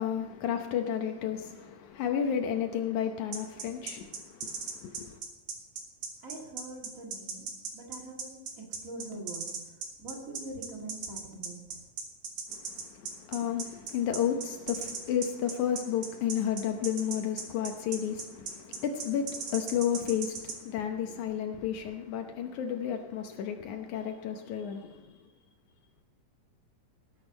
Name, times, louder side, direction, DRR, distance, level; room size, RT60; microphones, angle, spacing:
voice 1, 0.0-5.2 12.5-25.2, left 9 dB, 75° left, 2.3 m, -32 dB
sound 1, 3.3-20.6, right 5 dB, 65° right, 3.3 m, -37 dB
voice 2, 6.2-7.5 7.7-11.8, right 2 dB, 25° right, 2.7 m, -44 dB
19.0 x 10.0 x 5.3 m
omnidirectional pair, 3.6 m